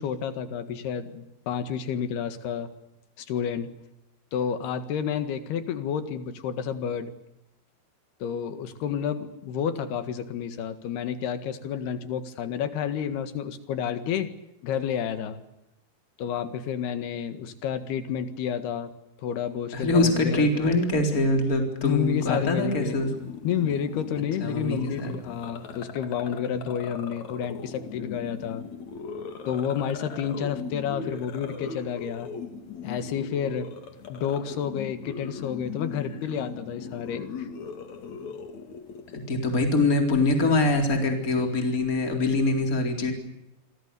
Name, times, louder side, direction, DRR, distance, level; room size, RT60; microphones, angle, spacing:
voice 1, 0.0-2.7 3.2-3.7 4.3-7.1 8.2-14.3 14.6-15.4 16.2-18.9 19.2-20.8 21.1-21.3 21.8-23.2 23.4-28.6 29.5-32.3 32.8-33.7 34.1-37.5, left 8 dB, 80° left, 11 dB, 3.8 m, -30 dB
voice 2, 19.7-23.1 24.4-25.1 39.3-43.1, left 2 dB, 20° left, 4 dB, 4.0 m, -24 dB
sound 1, 22.2-39.4, left 6 dB, 50° left, 3.5 m, -39 dB
27.5 x 25.0 x 6.9 m, 0.88 s
omnidirectional pair, 4.6 m